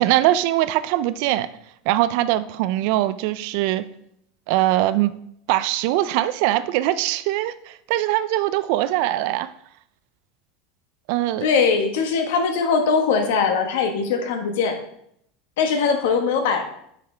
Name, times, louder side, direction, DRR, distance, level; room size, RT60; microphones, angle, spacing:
voice 1, 0.0-1.5 1.9-3.8 4.5-5.1 5.5-9.5 11.1-11.5, right 14 dB, 55° right, 0.3 m, -21 dB
voice 2, 11.4-14.8 15.6-16.7, left 5 dB, 80° left, 1.3 m, -21 dB
9.2 x 5.8 x 3.3 m
supercardioid pair, 170°, 0 cm